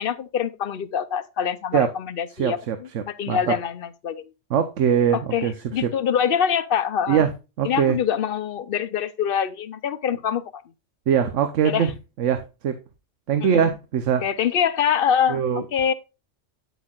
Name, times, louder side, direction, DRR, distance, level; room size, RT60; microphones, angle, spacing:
voice 1, 0.0-2.6 3.1-4.3 5.1-7.3 7.6-10.6 11.6-11.9 13.4-13.7 14.2-15.4 15.7-15.9, left 8 dB, 55° left, 0.8 m, -24 dB
voice 2, 2.3-3.5 4.5-5.9 7.1-7.3 7.6-8.0 11.1-11.9 12.2-12.8 13.3-14.2 15.3-15.6, right 8 dB, 80° right, 1.1 m, -22 dB
9.3 x 8.0 x 2.4 m
omnidirectional pair, 1.2 m